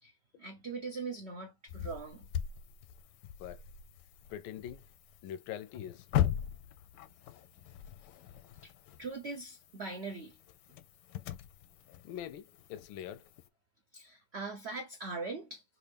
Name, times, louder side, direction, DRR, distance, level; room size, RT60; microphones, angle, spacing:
voice 1, 0.0-2.3 8.6-8.7 9.0-10.4 13.9-15.6, right 3 dB, 90° right, 0.5 m, -41 dB
sound 1, 1.7-13.5, left 11 dB, 75° left, 1.1 m, -40 dB
voice 2, 4.3-4.8 5.2-6.1 12.0-13.3, left 10 dB, 90° left, 1.4 m, -43 dB
3.5 x 2.6 x 3.3 m
omnidirectional pair, 2.1 m